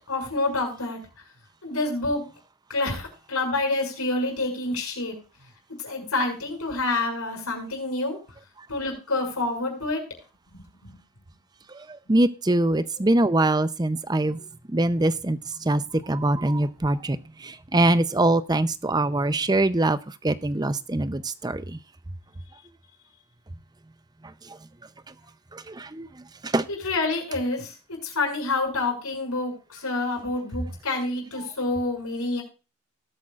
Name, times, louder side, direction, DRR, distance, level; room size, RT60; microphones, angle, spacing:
voice 1, 0.1-1.0 1.6-2.2 2.7-5.1 5.8-8.2 8.7-10.0 10.5-11.0 16.8-16.9 26.7-27.7 28.0-32.4, left 2 dB, 80° left, 2 dB, 6.2 m, -28 dB
voice 2, 12.1-14.4 14.7-15.4 15.7-15.8 16.1-17.2 17.7-20.0 20.2-21.6 25.7-26.1 26.5-26.7, right 2 dB, 20° right, 13 dB, 0.6 m, -22 dB
19.5 x 8.6 x 2.4 m, 0.32 s
head